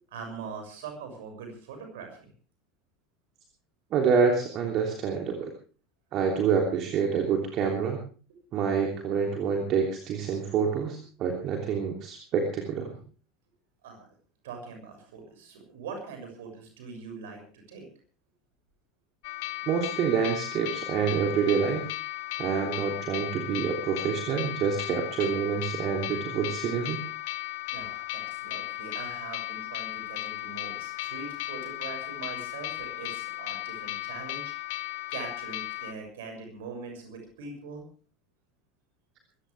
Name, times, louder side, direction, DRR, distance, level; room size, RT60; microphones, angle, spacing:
voice 1, 0.1-2.2 13.8-14.0 14.4-17.9 27.7-34.5 35.1-37.8, right 5 dB, 60° right, 4 dB, 6.7 m, -42 dB
voice 2, 3.9-5.5 6.1-8.0 8.5-12.9 19.7-21.9 22.4-27.0, right 6 dB, 40° right, 2 dB, 3.1 m, -27 dB
sound 1, 19.2-35.9, left 17 dB, 55° left, 1.4 m, -36 dB
23.5 x 15.5 x 3.5 m, 0.40 s
figure-of-eight pair, 75°, 0 cm